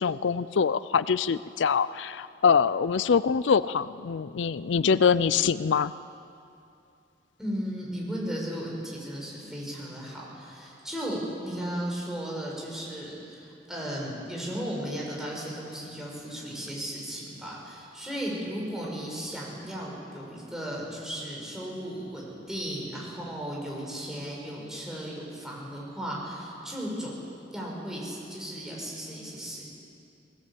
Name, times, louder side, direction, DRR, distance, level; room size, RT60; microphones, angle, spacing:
voice 1, 0.0-5.9, left 6 dB, 90° left, 16 dB, 0.4 m, -24 dB
voice 2, 7.4-27.1 27.5-29.6, equal, 5° right, -4 dB, 5.8 m, -35 dB
20.0 x 18.5 x 8.5 m, 2.6 s
head